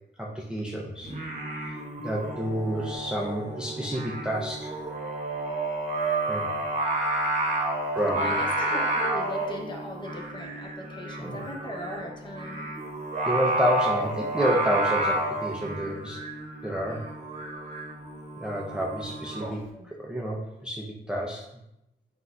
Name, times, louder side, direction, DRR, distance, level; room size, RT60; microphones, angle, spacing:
voice 1, 0.2-1.2 1.6-1.8 2.0-4.7 6.3-6.5 7.9-8.4 11.2-11.4 13.3-16.2 16.6-17.0 18.4-21.4, equal, 5° right, -3 dB, 0.5 m, -29 dB
Singing, 1.0-19.5, right 2 dB, 35° right, 0.9 m, -31 dB
voice 2, 8.1-12.7 19.7-19.9, equal, 25° left, 1 dB, 0.8 m, -37 dB
4.6 x 4.0 x 2.2 m, 0.87 s
cardioid pair, 95°, 19 cm